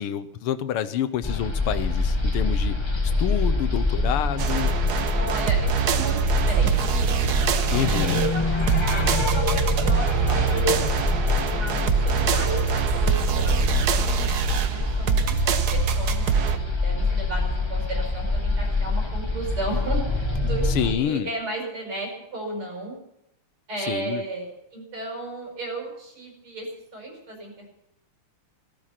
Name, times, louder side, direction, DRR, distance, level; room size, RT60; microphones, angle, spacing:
voice 1, 0.0-2.8 3.2-4.7 7.7-8.2 20.7-21.3 23.9-24.2, left 10 dB, 85° left, 11 dB, 1.8 m, -27 dB
sound 1, 1.2-21.0, left 3 dB, 15° left, 1.1 m, -25 dB
sound 2, 4.4-16.6, right 8 dB, 55° right, 1.3 m, -24 dB
voice 2, 5.2-7.1 7.8-10.9 11.6-16.2 16.5-22.9 23.7-27.7, right 2 dB, 75° right, 1 dB, 6.3 m, -35 dB
17.0 x 14.5 x 5.9 m, 0.83 s
omnidirectional pair, 2.4 m